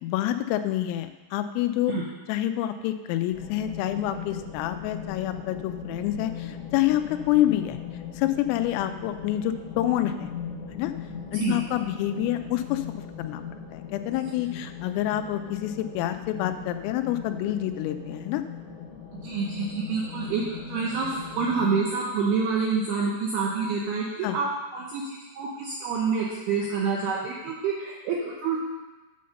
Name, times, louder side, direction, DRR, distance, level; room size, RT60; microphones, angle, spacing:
voice 1, 0.0-2.0 2.3-7.8 8.2-10.3 10.7-10.9 11.3-13.4 13.7-18.4 24.2-24.4, left 13 dB, 85° left, 9 dB, 3.2 m, -27 dB
sound 1, 3.3-21.8, left 7 dB, 60° left, 1.2 m, -39 dB
voice 2, 19.1-24.5 24.7-28.6, right 5 dB, 80° right, -3 dB, 2.3 m, -27 dB
8.6 x 5.5 x 6.4 m, 1.2 s
omnidirectional pair, 5.8 m